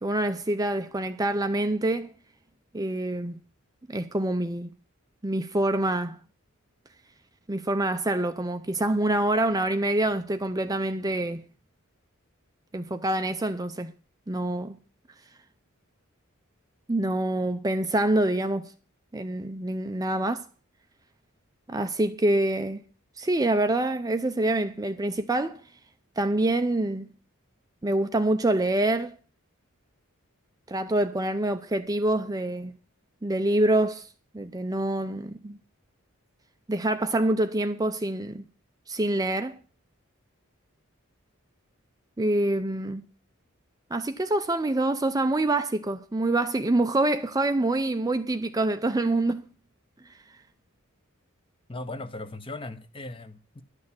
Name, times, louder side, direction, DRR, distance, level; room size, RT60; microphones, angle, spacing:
voice 1, 0.0-2.1 2.7-3.4 3.9-4.7 5.2-6.2 7.5-11.4 12.7-13.9 14.3-14.8 16.9-18.7 19.1-20.4 21.7-22.8 23.2-25.6 26.2-27.1 27.8-29.1 30.7-32.7 33.2-34.1 34.3-35.6 36.7-38.4 38.9-39.6 42.2-43.0 43.9-49.4, right 1 dB, 15° right, 0.5 m, -26 dB
voice 2, 51.7-53.6, left 2 dB, 25° left, 0.9 m, -38 dB
11.5 x 6.5 x 8.7 m
head